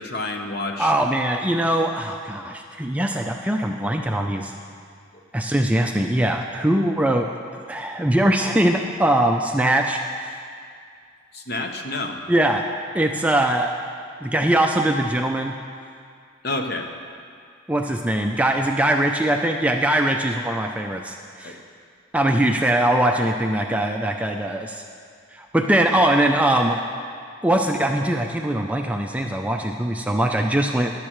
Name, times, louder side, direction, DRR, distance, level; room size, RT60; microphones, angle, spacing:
voice 1, 0.0-0.9 5.1-5.2 11.3-12.2 16.4-16.9 21.4-21.6, left 2 dB, 50° left, 4 dB, 0.9 m, -29 dB
voice 2, 0.8-4.5 5.3-7.3 7.7-10.4 12.3-12.6 12.9-13.7 14.2-15.5 17.7-21.6 22.1-24.8 25.3-26.8 27.4-31.0, right 1 dB, 5° right, 3 dB, 0.3 m, -21 dB
15.0 x 11.0 x 3.1 m, 2.3 s
head